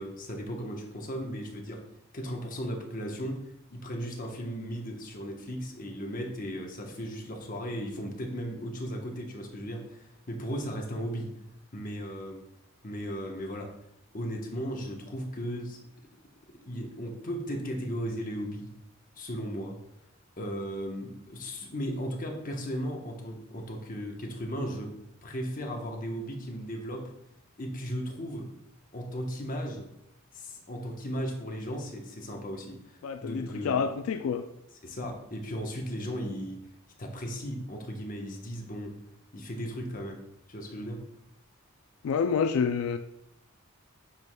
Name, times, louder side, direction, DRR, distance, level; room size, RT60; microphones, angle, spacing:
voice 1, 0.0-1.8 2.1-3.4 3.7-11.3 11.7-12.4 12.8-13.7 14.1-15.8 16.5-18.7 19.2-19.8 20.4-24.9 25.2-27.1 27.6-28.5 28.9-29.9 30.3-33.8 34.7-36.6 37.0-39.0 39.3-40.2 40.5-41.1, equal, 40° left, 1.0 m, -36 dB
voice 2, 33.0-34.4 42.0-43.0, left 6 dB, 80° left, 0.3 m, -28 dB
9.4 x 4.8 x 2.2 m
head